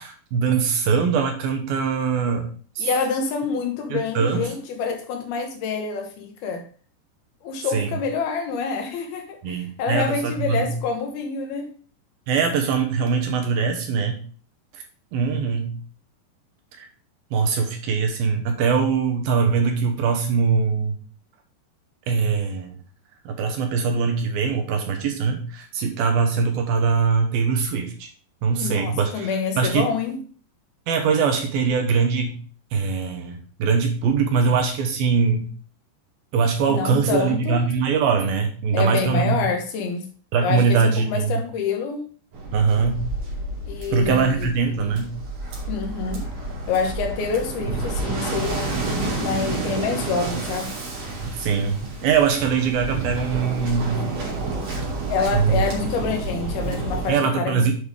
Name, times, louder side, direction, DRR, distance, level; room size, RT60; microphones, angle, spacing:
voice 1, 0.0-2.5 2.8-2.9 3.9-4.4 7.7-7.9 9.4-10.7 12.3-14.2 14.7-14.8 15.1-15.8 16.7-16.9 17.3-20.9 22.1-22.8 23.3-28.1 28.4-29.3 29.6-29.9 30.9-32.4 32.7-35.5 36.3-39.4 40.3-41.3 42.5-43.1 43.9-45.2 51.4-54.0 55.3-55.6 57.1-57.7, right 5 dB, 70° right, 2.6 m, -22 dB
voice 2, 2.8-6.7 7.4-11.7 28.6-30.2 36.7-37.6 38.7-40.1 40.4-42.1 43.7-44.5 45.7-46.3 46.7-50.7 55.1-57.7, left 5 dB, 70° left, 2.7 m, -27 dB
Waves surf, 42.3-57.1, right 3 dB, 50° right, 4.0 m, -30 dB
8.3 x 5.4 x 4.9 m
omnidirectional pair, 5.0 m